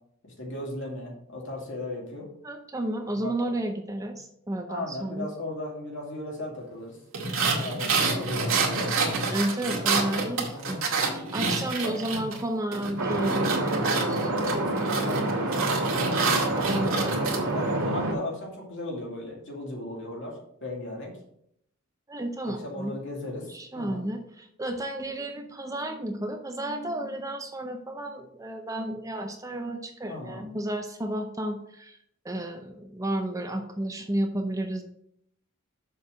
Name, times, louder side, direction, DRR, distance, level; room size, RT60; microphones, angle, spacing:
voice 1, 0.4-2.3 3.2-3.5 4.7-7.0 7.6-9.0 10.5-10.9 11.8-12.0 14.3-14.6 14.9-17.2 17.5-20.3 20.6-21.1 22.4-23.5 23.7-24.1 30.1-30.5, left 1 dB, 55° left, -1 dB, 2.5 m, -37 dB
voice 2, 2.4-5.3 9.3-14.3 16.6-17.2 22.1-22.9 23.5-32.0 32.2-34.8, right 1 dB, 15° right, 5 dB, 0.6 m, -32 dB
sound 1, 7.1-12.4 12.7-17.4, right 4 dB, 65° right, 2.0 m, -28 dB
sound 2, 13.0-18.1, right 2 dB, 80° right, 2.1 m, -27 dB
7.0 x 4.8 x 6.2 m, 0.73 s
head